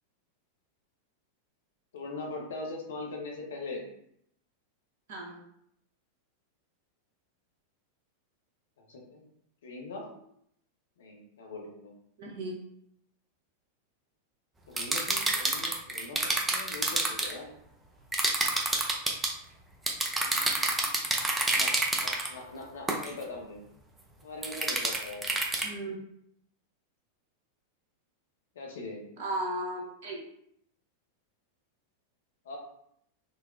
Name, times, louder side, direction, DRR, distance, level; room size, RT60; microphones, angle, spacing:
voice 1, 1.9-3.8 8.8-9.2 9.6-10.1 11.0-11.9 14.7-17.5 20.2-21.0 21.5-23.6 24.2-25.2 25.5-25.7 28.6-29.0 32.4-32.6, left 3 dB, 60° left, 0 dB, 0.8 m, -41 dB
voice 2, 12.2-12.5 25.6-26.0 29.2-30.2, right 1 dB, 55° right, -1 dB, 0.9 m, -35 dB
sound 1, 14.8-17.3 18.1-19.3 19.9-22.3 22.9-23.1 24.4-25.7, right 2 dB, 10° right, 0.5 m, -28 dB
3.9 x 2.1 x 2.4 m, 0.72 s
figure-of-eight pair, 90°, 0 cm